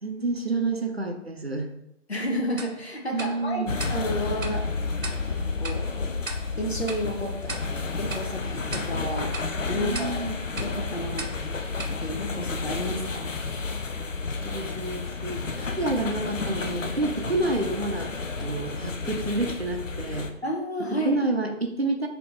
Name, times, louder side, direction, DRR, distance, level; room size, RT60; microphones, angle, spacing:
voice 1, 0.0-1.7 3.1-3.8 9.7-10.3 14.4-18.1 18.4-20.3 20.9-22.1, right 2 dB, 55° right, 4 dB, 0.6 m, -29 dB
voice 2, 2.1-4.6 5.3-6.2 6.6-7.6 8.0-10.3 10.6-11.3 12.0-13.3 20.4-21.2, equal, 55° left, 1 dB, 1.0 m, -31 dB
Tick-tock, 2.6-13.0, right 3 dB, 90° right, 0.8 m, -41 dB
sound 1, 3.7-20.3, left 4 dB, 75° left, 0.6 m, -31 dB
5.2 x 2.9 x 3.3 m, 0.84 s
figure-of-eight pair, 170°, 39 cm